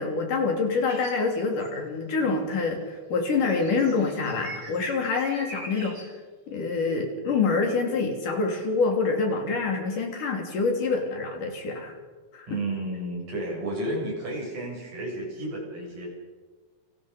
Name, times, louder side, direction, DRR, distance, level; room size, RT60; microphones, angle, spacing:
voice 1, 0.0-6.1 6.5-11.9 12.3-12.5, left 4 dB, 65° left, 2 dB, 4.9 m, -26 dB
sound 1, 0.9-1.2 1.6-1.7 3.4-6.1, right 2 dB, 40° right, 7.2 m, -42 dB
voice 2, 12.5-16.1, right 1 dB, 65° right, -1 dB, 9.1 m, -32 dB
29.5 x 27.0 x 5.4 m, 1.4 s
omnidirectional pair, 4.1 m